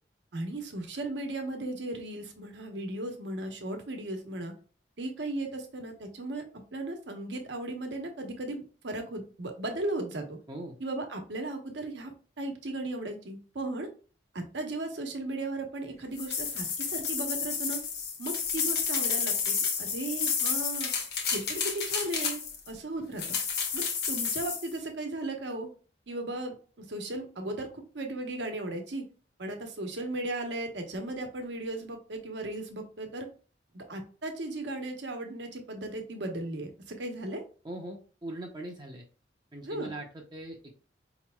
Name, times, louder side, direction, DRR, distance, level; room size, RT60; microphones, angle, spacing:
voice 1, 0.3-4.5 5.0-6.4 6.7-10.2 10.8-12.1 12.4-13.9 14.3-17.8 18.2-20.9 21.3-22.4 22.7-23.4 23.7-25.7 26.1-29.0 29.4-33.3 33.7-37.4 39.6-39.9, right 2 dB, 75° right, 4 dB, 0.9 m, -36 dB
sound 1, 16.2-22.7 23.2-24.7, left 6 dB, 60° left, 0.9 m, -31 dB
voice 2, 37.6-39.0 39.5-40.7, right 1 dB, 25° right, 1 dB, 0.5 m, -41 dB
5.0 x 2.9 x 2.2 m, 0.38 s
head